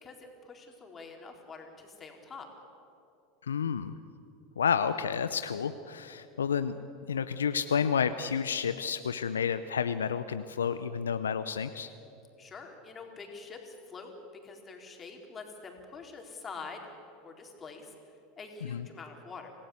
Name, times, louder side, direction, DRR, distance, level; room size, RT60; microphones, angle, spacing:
voice 1, 0.0-2.5 12.4-14.1 14.4-16.9 17.2-18.0 18.4-19.5, left 4 dB, 25° left, 2 dB, 4.0 m, -46 dB
voice 2, 3.4-4.0 4.6-6.8 7.1-11.9 18.7-18.9, left 7 dB, 80° left, 11 dB, 0.6 m, -30 dB
26.0 x 17.0 x 8.0 m, 2.8 s
figure-of-eight pair, 80°, 0 cm